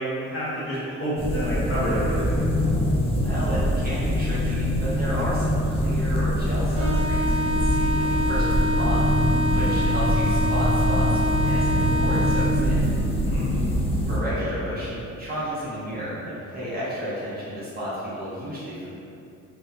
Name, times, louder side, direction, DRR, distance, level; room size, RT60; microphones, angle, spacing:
voice 1, 0.0-2.3 13.2-13.5 14.4-14.5, equal, 45° left, -9 dB, 1.0 m, -28 dB
sound 1, 1.2-14.2, equal, 20° left, 0.4 m, -23 dB
voice 2, 3.2-9.0 9.5-12.8 14.1-18.9, equal, 30° right, -10 dB, 0.9 m, -32 dB
sound 2, 6.8-12.8, left 1 dB, 65° right, 0.7 m, -26 dB
2.7 x 2.2 x 2.4 m, 2.7 s
cardioid pair, 90°, 30 cm